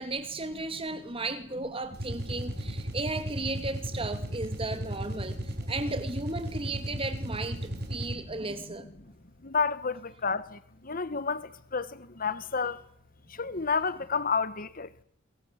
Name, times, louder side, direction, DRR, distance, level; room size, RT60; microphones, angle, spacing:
voice 1, 0.0-8.9 13.6-13.7, right 2 dB, 25° right, 2.7 m, -35 dB
sound 1, 1.9-8.4, equal, 50° right, 6.2 m, -35 dB
voice 2, 9.4-12.8 13.3-14.9, left 5 dB, 40° left, 1.5 m, -30 dB
26.0 x 21.5 x 8.3 m
head